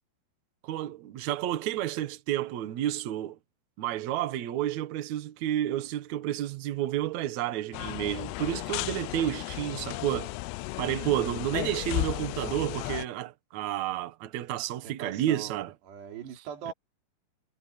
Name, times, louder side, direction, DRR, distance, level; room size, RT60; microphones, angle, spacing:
voice 1, 0.6-3.4 3.8-10.3 10.8-15.7, right 12 dB, 60° right, 2.0 m, -31 dB
sound 1, 7.7-13.1, left 20 dB, 90° left, 2.7 m, -34 dB
voice 2, 14.8-15.6 15.9-16.7, right 7 dB, 80° right, 5.4 m, -41 dB
omnidirectional pair, 4.8 m